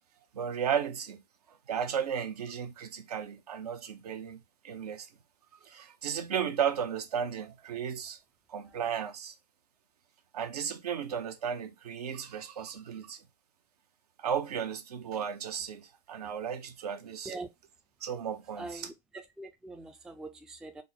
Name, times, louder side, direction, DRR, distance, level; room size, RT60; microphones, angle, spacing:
voice 1, 0.3-1.2 1.5-5.1 5.6-8.2 8.5-9.3 10.3-13.2 14.2-17.4 18.0-18.9, right 8 dB, 65° right, 0.7 m, -34 dB
voice 2, 18.6-18.9 19.4-20.8, right 2 dB, 5° right, 0.3 m, -42 dB
3.5 x 2.0 x 3.9 m
figure-of-eight pair, 100°, 21 cm